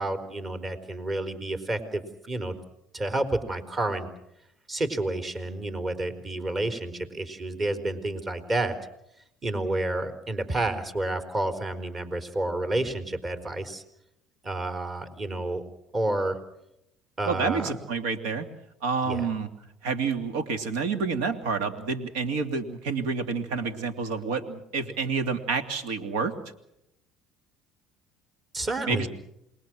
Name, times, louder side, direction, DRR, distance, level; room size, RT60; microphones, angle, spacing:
voice 1, 0.0-2.5 2.9-4.1 4.7-8.7 9.4-13.8 14.4-15.6 15.9-16.4 17.2-17.7 19.0-19.3 28.5-29.1, right 2 dB, 30° right, 9 dB, 4.2 m, -30 dB
voice 2, 17.3-18.5 18.8-19.5 19.8-26.3 28.9-29.1, right 5 dB, 85° right, 8 dB, 2.7 m, -28 dB
28.0 x 21.5 x 6.3 m, 0.81 s
supercardioid pair, 90°, 0 cm